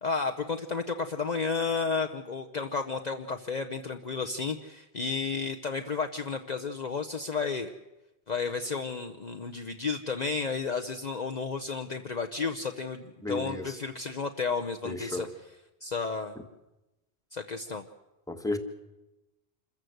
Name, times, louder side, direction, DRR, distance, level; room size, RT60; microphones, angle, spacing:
voice 1, 0.0-7.7 8.3-15.3 15.8-16.3 17.3-17.9, left 4 dB, 45° left, 4 dB, 0.9 m, -32 dB
voice 2, 13.2-13.8 14.8-15.3 18.3-18.6, left 2 dB, 5° left, 5 dB, 1.6 m, -33 dB
27.0 x 14.5 x 7.9 m, 0.99 s
omnidirectional pair, 1.1 m